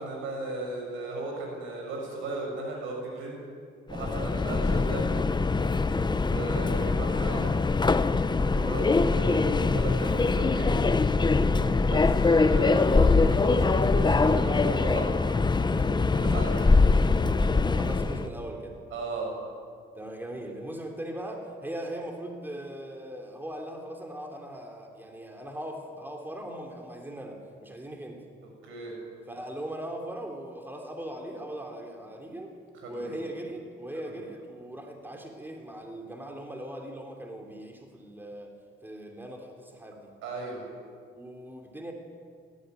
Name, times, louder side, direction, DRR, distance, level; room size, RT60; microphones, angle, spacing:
voice 1, 0.0-3.4 3.9-5.0 6.2-7.5 8.5-10.7 11.9-15.1 16.1-16.7 18.9-19.3 28.6-28.9 32.8-33.2 40.2-40.6, right 2 dB, 85° right, 0 dB, 6.5 m, -35 dB
Subway metro underground, 3.9-18.3, left 3 dB, 20° left, 0.9 m, -23 dB
voice 2, 4.0-4.3 5.9-6.2 8.4-8.7 11.4-11.8 15.7-16.5 17.5-18.8 19.9-28.2 29.3-32.5 32.8-38.5 38.8-40.1 41.1-41.9, right 1 dB, 10° right, 2 dB, 3.4 m, -40 dB
18.5 x 14.5 x 9.5 m, 2.1 s
cardioid pair, 90°, 20 cm